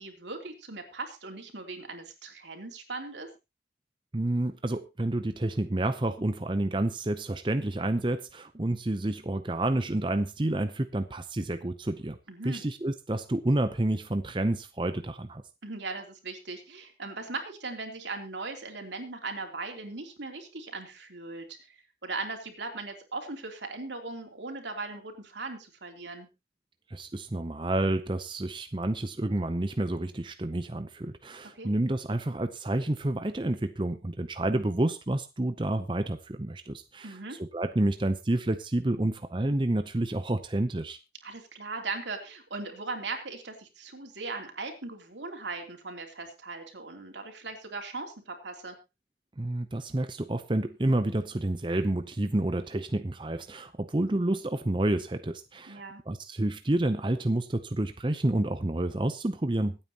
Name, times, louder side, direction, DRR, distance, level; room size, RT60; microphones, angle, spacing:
voice 1, 0.0-3.3 12.3-12.7 15.6-26.3 31.5-31.7 37.0-37.4 41.2-48.8 55.7-56.0, right 3 dB, 85° right, 4 dB, 3.2 m, -39 dB
voice 2, 4.1-12.2 12.4-15.4 26.9-41.0 49.4-59.8, right 1 dB, 25° right, 9 dB, 0.7 m, -29 dB
24.5 x 8.9 x 2.9 m, 0.27 s
head